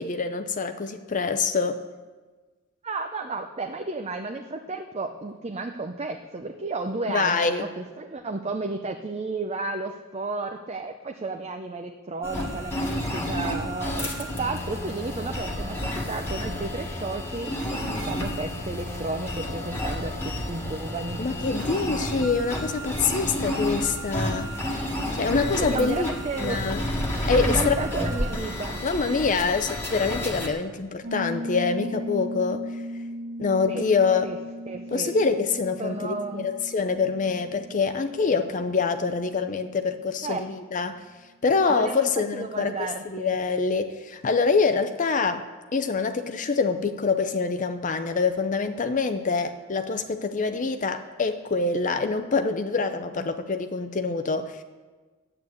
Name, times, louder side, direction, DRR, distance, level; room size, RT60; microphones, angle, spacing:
voice 1, 0.0-1.8 7.1-7.7 21.2-24.5 25.2-26.1 26.4-26.8 27.3-27.8 28.8-32.6 33.4-34.3 34.9-41.0 41.4-45.4 45.7-54.6, left 4 dB, 35° left, 8 dB, 0.5 m, -25 dB
voice 2, 2.8-21.2 25.3-26.6 27.3-28.8 33.7-33.8 34.2-34.4 34.7-35.2 35.8-36.5 40.2-40.5 41.7-43.4 53.1-53.3, right 3 dB, 30° right, 4 dB, 0.6 m, -33 dB
sound 1, 12.2-30.5, left 1 dB, 10° left, 1.6 m, -30 dB
Piano, 31.0-39.5, left 1 dB, 55° right, 1.9 m, -37 dB
10.5 x 8.8 x 7.8 m, 1.3 s
head